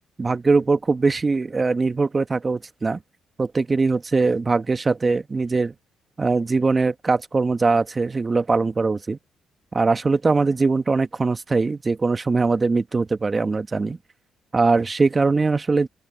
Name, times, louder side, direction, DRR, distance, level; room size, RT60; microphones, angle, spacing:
voice 1, 0.2-3.0 3.4-5.7 6.2-9.2 9.7-14.0 14.5-15.9, right 3 dB, 30° right, 1.4 m, -21 dB
open air
cardioid pair, 90°, 0 cm